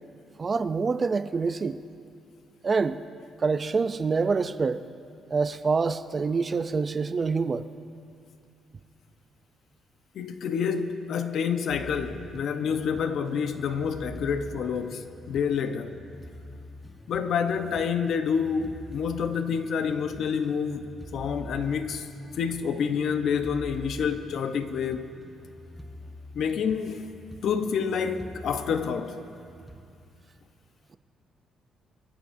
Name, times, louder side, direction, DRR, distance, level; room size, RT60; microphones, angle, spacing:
voice 1, 0.4-1.8 2.6-3.0 3.4-4.8 5.3-7.7, right 4 dB, 35° right, 0.5 m, -26 dB
voice 2, 10.1-16.0 17.1-22.1 22.3-25.2 26.3-27.0 27.4-29.2, left 6 dB, 70° left, 0.9 m, -28 dB
sound 1, 11.7-29.8, equal, ahead, 1.2 m, -45 dB
24.5 x 14.0 x 2.7 m
cardioid pair, 90°, 0 cm